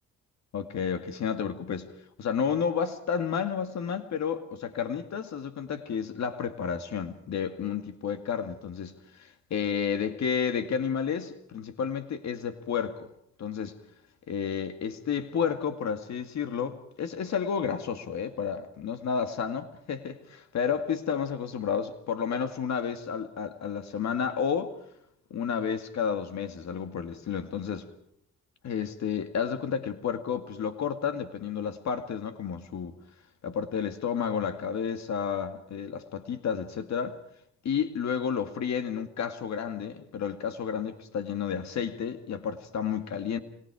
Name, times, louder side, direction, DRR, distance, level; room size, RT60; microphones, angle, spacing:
voice 1, 0.5-1.9 2.2-13.1 13.4-13.8 14.3-24.7 25.3-27.9 28.6-32.9 33.4-37.2 37.6-43.4, left 7 dB, 65° left, 2.2 m, -31 dB
26.0 x 25.5 x 4.9 m
cardioid pair, 90°, 30 cm